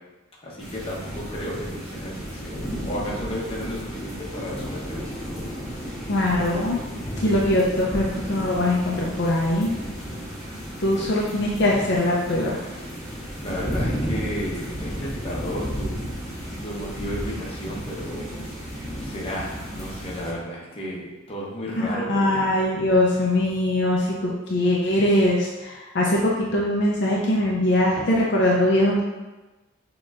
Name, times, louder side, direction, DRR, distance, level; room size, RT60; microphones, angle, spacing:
voice 1, 0.4-5.1 10.8-11.2 13.1-16.1 16.6-18.2 19.0-22.6, equal, 25° left, -5 dB, 0.8 m, -33 dB
sound 1, 0.6-20.3, equal, ahead, 1.1 m, -33 dB
voice 2, 6.1-6.8 7.2-9.7 10.8-12.6 21.8-29.0, left 1 dB, 55° left, -4 dB, 0.5 m, -22 dB
6.3 x 2.9 x 2.5 m, 1.1 s
head